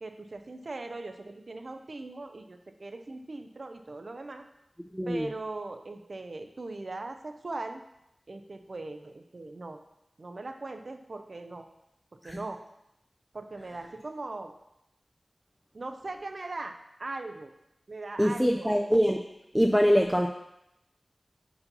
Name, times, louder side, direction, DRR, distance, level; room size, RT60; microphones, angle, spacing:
voice 1, 0.0-4.5 5.1-7.8 8.3-9.8 10.2-11.7 12.1-12.6 13.3-14.5 15.7-17.5 17.9-18.9, right 2 dB, 60° right, 7 dB, 0.6 m, -40 dB
voice 2, 4.9-5.3 12.2-12.4 18.2-19.2 19.5-20.3, equal, ahead, 2 dB, 0.4 m, -23 dB
5.3 x 4.8 x 5.5 m, 0.84 s
wide cardioid pair, 80°, 0 cm